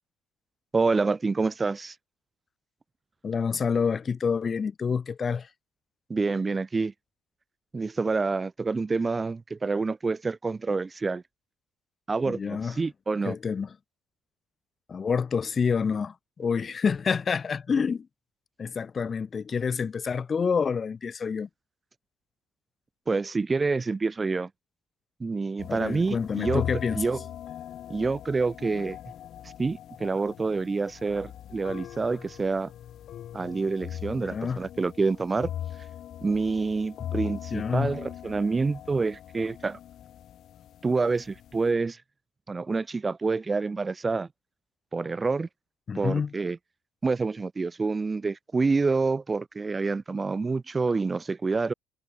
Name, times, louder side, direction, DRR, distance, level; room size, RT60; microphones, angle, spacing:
voice 1, 0.7-2.0 6.1-6.9 7.7-11.2 12.1-13.4 23.1-24.5 25.2-26.6 26.9-27.2 27.9-29.0 29.4-32.7 33.3-35.5 36.2-39.8 40.8-42.0 42.5-44.3 44.9-45.5 45.9-46.6 47.0-51.7, right 4 dB, 20° right, 0.6 m, -27 dB
voice 2, 3.2-5.5 12.3-12.8 13.2-13.7 14.9-18.1 18.6-21.5 25.7-27.0 34.1-34.6 37.5-37.9 45.9-46.3, left 6 dB, 30° left, 1.0 m, -28 dB
sound 1, 25.6-41.7, left 11 dB, 45° left, 1.9 m, -40 dB
figure-of-eight pair, 55°, 0 cm